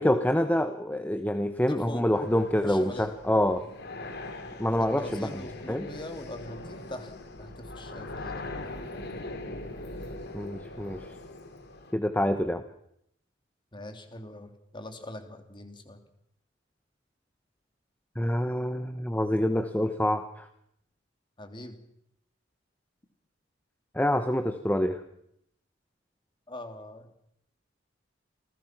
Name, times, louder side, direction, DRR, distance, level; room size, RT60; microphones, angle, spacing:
voice 1, 0.0-3.6 4.6-5.3 5.7-5.9 10.3-11.1 11.9-12.6 18.2-20.5 23.9-25.0, left 1 dB, 10° left, 8 dB, 1.1 m, -26 dB
voice 2, 1.6-2.1 2.6-3.1 4.8-7.1 7.4-8.8 13.7-16.0 21.4-21.8 26.5-27.2, left 1 dB, 25° left, 6 dB, 3.0 m, -42 dB
sound 1, 2.1-11.9, left 2 dB, 60° left, 3.3 m, -41 dB
28.0 x 19.5 x 6.0 m, 0.76 s
head